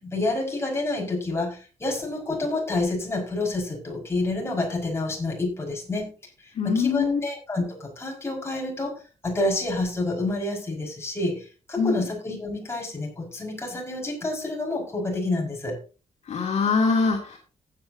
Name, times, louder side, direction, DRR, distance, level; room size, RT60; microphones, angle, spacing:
voice 1, 0.0-6.1 6.4-15.8, left 2 dB, 20° left, -1 dB, 5.6 m, -28 dB
voice 2, 6.6-7.2 11.8-12.0 16.3-17.4, left 5 dB, 60° left, 0 dB, 2.6 m, -23 dB
15.5 x 9.1 x 2.8 m, 0.35 s
cardioid pair, 110°, 13 cm